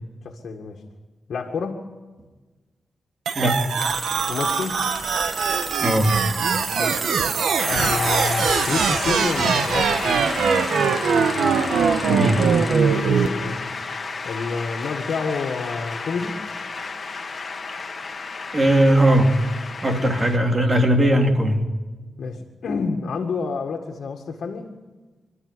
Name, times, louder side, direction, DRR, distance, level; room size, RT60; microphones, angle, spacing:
voice 1, 0.2-0.8 1.3-1.9 4.3-4.9 6.8-7.0 7.6-10.2 12.9-13.6 14.2-16.4 19.9-20.0 22.2-24.7, left 4 dB, 75° left, 1 dB, 2.0 m, -29 dB
sound 1, 3.3-13.3, right 6 dB, 85° right, 1.4 m, -22 dB
sound 2, 3.8-12.8, left 1 dB, 5° left, 2.2 m, -38 dB
voice 2, 5.8-6.2 12.1-12.5 18.5-19.4 19.8-21.7, right 1 dB, 25° right, 4 dB, 3.0 m, -18 dB
Shout / Cheering / Applause, 7.6-20.4, left 4 dB, 40° left, 2.2 m, -31 dB
28.0 x 13.0 x 9.9 m, 1.3 s
wide cardioid pair, 105°, 0 cm